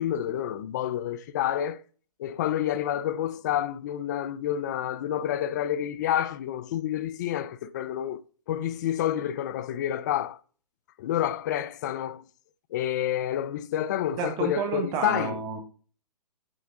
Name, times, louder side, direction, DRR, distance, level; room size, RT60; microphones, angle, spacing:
voice 1, 0.0-1.8 2.2-10.4 11.0-12.2 12.7-15.4, left 11 dB, 30° left, 0.4 m, -29 dB
voice 2, 14.2-15.6, right 5 dB, 20° right, 1.3 m, -30 dB
8.8 x 3.9 x 3.7 m
hypercardioid pair, 140°, 21 cm